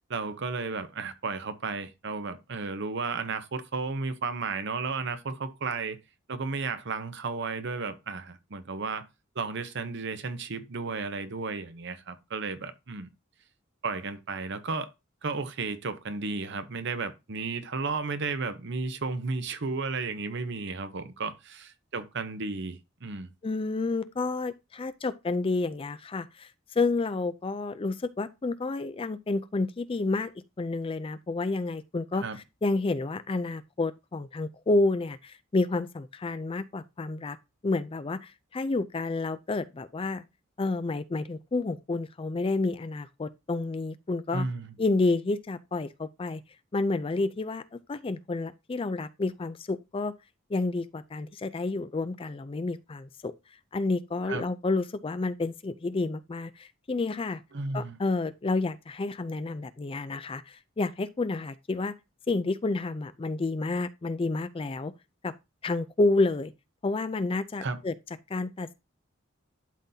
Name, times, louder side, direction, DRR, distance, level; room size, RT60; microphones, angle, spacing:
voice 1, 0.1-6.0 6.3-9.1 9.4-13.1 13.8-14.9 15.2-23.3 32.2-32.4 44.3-44.7 54.3-54.5 57.5-58.0 67.6-67.8, right 4 dB, 60° right, 0.8 m, -33 dB
voice 2, 23.4-26.5 26.7-30.3 30.6-32.2 32.6-37.4 37.6-40.2 40.6-44.5 44.8-46.4 46.7-50.1 50.5-53.3 53.7-57.4 57.7-61.9 62.3-64.9 65.2-65.3 65.6-66.5 66.8-67.9 68.3-68.7, left 3 dB, 25° left, 0.4 m, -30 dB
11.5 x 3.9 x 2.7 m
head